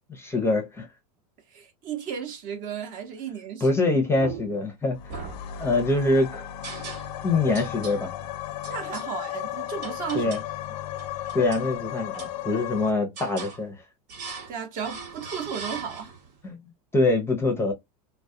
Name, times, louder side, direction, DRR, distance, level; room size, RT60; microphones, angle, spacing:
voice 1, 0.1-0.9 3.6-5.0 5.6-6.4 7.2-8.1 10.1-10.4 11.3-13.8 16.4-16.6 16.9-17.7, left 2 dB, 10° left, 0.5 m, -24 dB
voice 2, 1.5-3.7 8.7-10.3 14.5-16.1, right 7 dB, 40° right, 0.7 m, -34 dB
sound 1, 4.2-4.7 5.1-6.0 6.6-7.3 7.5-8.0 8.6-9.1 9.8-10.5 10.9-11.7 12.1-12.8 13.2-13.6 14.1-14.6 14.8-16.3, right 4 dB, 75° right, 1.2 m, -40 dB
sound 2, 4.9-12.9, left 12 dB, 80° left, 0.5 m, -35 dB
2.2 x 2.1 x 2.6 m
supercardioid pair, 125°, 21 cm